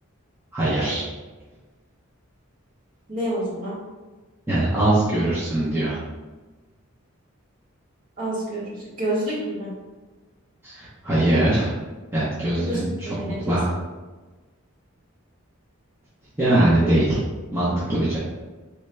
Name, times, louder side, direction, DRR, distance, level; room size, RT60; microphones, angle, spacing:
voice 1, 0.5-1.1 4.5-6.0 10.6-11.7 12.1-13.1 13.4-13.7 16.4-17.2 17.5-18.2, right 1 dB, 10° right, -11 dB, 0.6 m, -21 dB
voice 2, 3.1-3.8 8.2-9.7 12.6-13.4 16.8-17.2, right 1 dB, 40° right, -9 dB, 1.5 m, -29 dB
4.4 x 3.1 x 2.2 m, 1.3 s
head